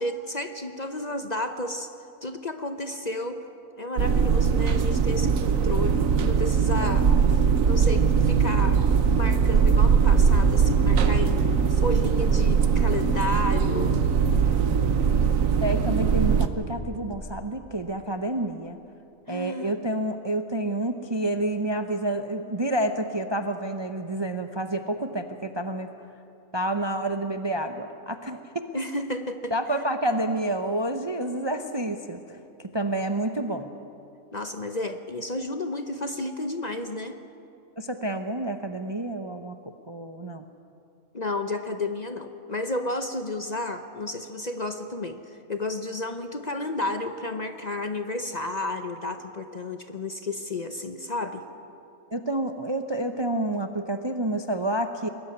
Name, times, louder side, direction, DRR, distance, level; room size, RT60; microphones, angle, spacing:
voice 1, 0.0-1.9 2.2-3.4 3.8-7.1 7.6-8.8 9.1-14.0 19.3-19.7 28.7-29.5 34.3-37.2 41.1-51.4, left 2 dB, 40° left, 8 dB, 0.8 m, -32 dB
sound 1, 4.0-16.5, right 6 dB, 75° right, 1.3 m, -21 dB
voice 2, 15.6-18.8 19.3-25.9 26.5-28.4 28.7-28.8 29.5-32.4 32.7-33.7 37.8-40.5 52.1-55.1, right 1 dB, 25° right, 7 dB, 0.6 m, -29 dB
21.5 x 13.5 x 9.8 m, 2.7 s
omnidirectional pair, 1.4 m